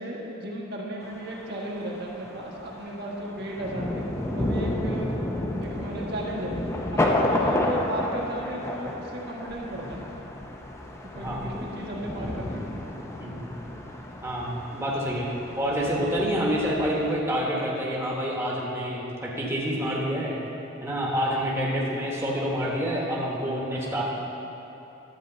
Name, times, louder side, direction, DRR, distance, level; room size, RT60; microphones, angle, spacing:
voice 1, 0.0-4.0 4.3-5.1 5.6-6.5 6.9-10.0 11.1-12.6, right 1 dB, 55° right, -3 dB, 1.3 m, -35 dB
Thunder, 1.0-17.2, left 1 dB, 15° left, 0.6 m, -31 dB
voice 2, 14.2-15.3 15.6-20.4 20.8-24.0, equal, 15° right, -5 dB, 1.2 m, -27 dB
11.0 x 4.5 x 7.9 m, 3.0 s
head